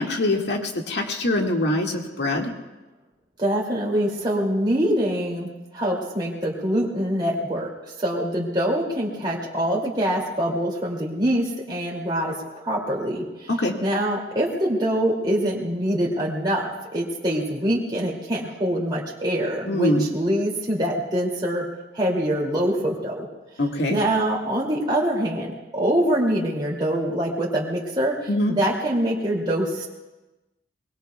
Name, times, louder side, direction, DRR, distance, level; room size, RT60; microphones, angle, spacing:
voice 1, 0.0-2.5 13.6-13.8 19.7-20.1 23.6-24.0 28.3-28.5, left 1 dB, 65° left, 1 dB, 1.9 m, -23 dB
voice 2, 3.4-13.5 13.8-21.7 21.9-23.3 23.9-28.2 28.5-29.9, right 1 dB, 25° right, -4 dB, 2.6 m, -24 dB
24.0 x 22.5 x 2.3 m, 1.1 s
head